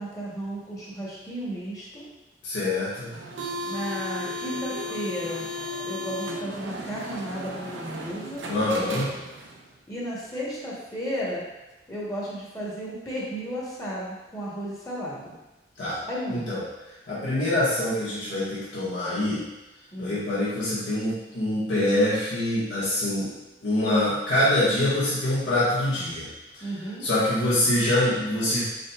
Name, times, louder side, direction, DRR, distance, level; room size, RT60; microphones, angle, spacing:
voice 1, 0.0-2.1 3.7-5.4 5.8-8.4 9.9-11.4 11.9-15.3 16.0-16.4 19.9-20.2 26.6-27.1, equal, 20° left, -5 dB, 1.0 m, -33 dB
voice 2, 2.4-3.1 8.4-9.1 15.8-16.0 16.3-16.6 17.1-19.4 20.0-23.3 23.6-26.3 26.5-26.7 27.0-28.6, left 1 dB, 80° left, -11 dB, 1.3 m, -25 dB
sound 1, 3.1-9.6, left 1 dB, 90° right, 0.6 m, -35 dB
5.1 x 4.1 x 2.3 m, 1.0 s
head